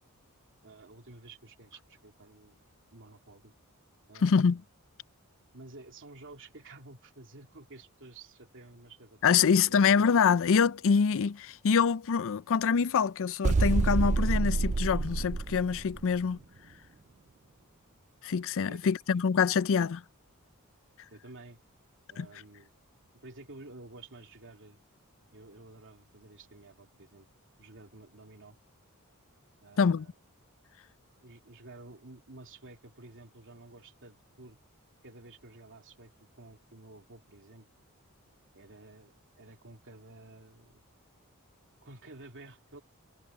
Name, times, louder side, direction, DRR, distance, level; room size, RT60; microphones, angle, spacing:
voice 1, 0.6-2.6 2.9-3.5 4.1-4.6 5.5-10.1 18.7-18.9 19.5-19.6 21.1-21.6 22.1-22.7 23.2-24.8 25.3-27.3 27.6-28.6 29.6-30.1 31.2-34.6 35.0-37.7 38.5-40.8 41.8-42.8, right 2 dB, 60° right, 2.9 m, -51 dB
voice 2, 4.2-4.6 9.2-16.4 18.2-20.0 22.2-22.3 29.8-30.1, left 6 dB, 65° left, 0.5 m, -25 dB
sound 1, 13.4-16.2, right 3 dB, 30° right, 0.4 m, -27 dB
head